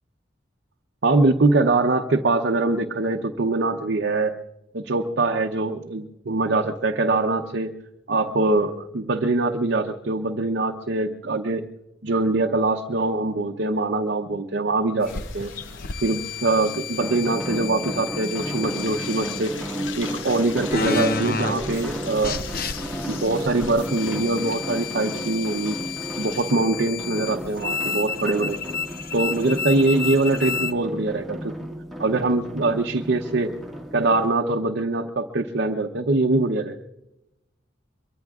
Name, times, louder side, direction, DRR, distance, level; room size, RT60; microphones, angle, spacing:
voice 1, 1.0-4.3 4.7-7.7 8.1-11.6 12.0-15.5 16.0-19.5 19.9-22.4 23.1-25.8 26.2-28.6 29.1-31.5 32.0-33.6 33.9-36.8, right 2 dB, 60° right, 3 dB, 0.7 m, -23 dB
sound 1, 15.0-26.5, left 8 dB, 85° left, 0.9 m, -42 dB
sound 2, 15.0-30.7, left 5 dB, 55° left, 0.7 m, -32 dB
sound 3, 17.0-34.3, right 1 dB, ahead, 1.7 m, -33 dB
23.5 x 23.5 x 2.4 m, 0.92 s
head